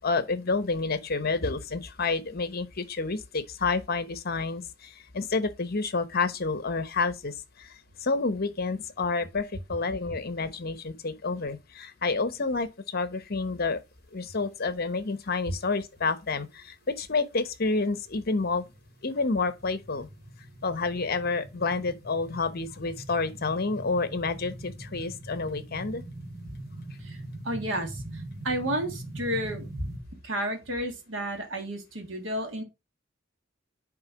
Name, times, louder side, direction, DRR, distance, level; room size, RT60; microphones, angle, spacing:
voice 1, 0.0-13.8 14.1-18.6 19.0-20.1 20.6-26.0, left 3 dB, 55° left, 1.0 m, -29 dB
sound 1, 18.0-30.0, right 1 dB, 65° right, 2.1 m, -42 dB
voice 2, 27.4-29.9 30.2-32.6, right 1 dB, 80° right, 1.9 m, -32 dB
9.7 x 3.7 x 4.9 m
head